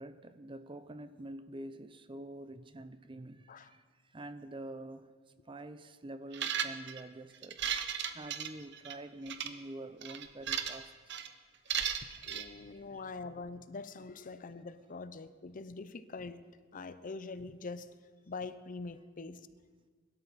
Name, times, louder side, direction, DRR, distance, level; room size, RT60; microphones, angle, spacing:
voice 1, 0.0-5.1 5.5-7.6 8.1-11.1 11.7-13.4, right 1 dB, 25° right, 0.6 m, -47 dB
sound 1, 6.3-7.0 7.4-9.0 9.3-9.5 10.0-10.8 11.1-11.3 11.7-12.5, right 8 dB, 60° right, 0.9 m, -35 dB
voice 2, 12.2-16.4 16.7-17.9 18.3-19.5, left 3 dB, 45° left, 0.6 m, -44 dB
21.5 x 12.5 x 4.2 m
head